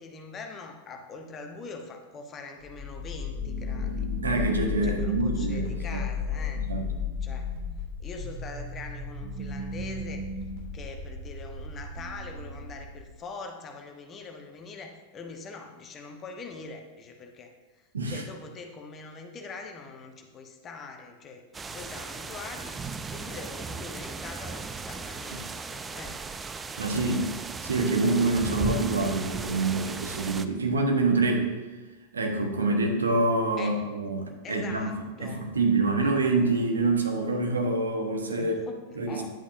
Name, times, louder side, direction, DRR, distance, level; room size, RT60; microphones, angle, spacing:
voice 1, 0.0-4.1 4.8-6.6 7.2-7.5 8.0-10.2 10.7-17.5 18.1-21.4 21.7-22.8 23.1-26.2 26.9-27.3 33.6-33.8 34.4-35.5 38.4-38.8 39.1-39.3, left 4 dB, 25° left, 4 dB, 1.1 m, -43 dB
sound 1, 2.6-13.3, left 5 dB, 50° right, 2.8 m, -34 dB
voice 2, 4.2-6.0 6.6-6.8 17.9-18.2 26.8-27.3 27.6-31.5 32.1-38.5 39.0-39.3, right 3 dB, 70° right, 3 dB, 1.2 m, -26 dB
sound 2, 21.5-30.4, right 4 dB, 15° right, 0.4 m, -36 dB
10.5 x 8.3 x 2.7 m, 1.2 s
figure-of-eight pair, 90°, 0 cm